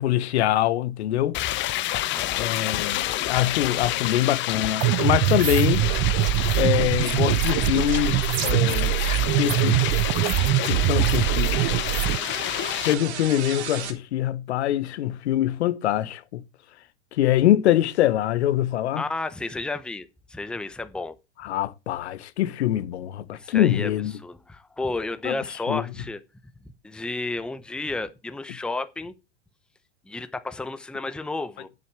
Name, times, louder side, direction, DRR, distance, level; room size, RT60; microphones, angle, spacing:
voice 1, 0.0-1.4 2.4-5.8 6.6-10.1 10.7-11.8 12.8-16.4 17.1-19.0 21.4-24.2 25.2-25.4 25.7-25.8, left 13 dB, 70° left, 1.2 m, -24 dB
sound 1, 1.3-12.9, left 15 dB, 35° left, 0.8 m, -29 dB
voice 2, 2.1-2.5 19.0-21.2 23.3-26.2 26.8-29.1 30.1-31.7, left 3 dB, 5° left, 0.8 m, -32 dB
sound 2, 4.8-12.2, right 18 dB, 35° right, 0.5 m, -23 dB
sound 3, 7.6-13.9, right 7 dB, 70° right, 3.3 m, -39 dB
9.5 x 8.2 x 6.1 m
hypercardioid pair, 110°, 34 cm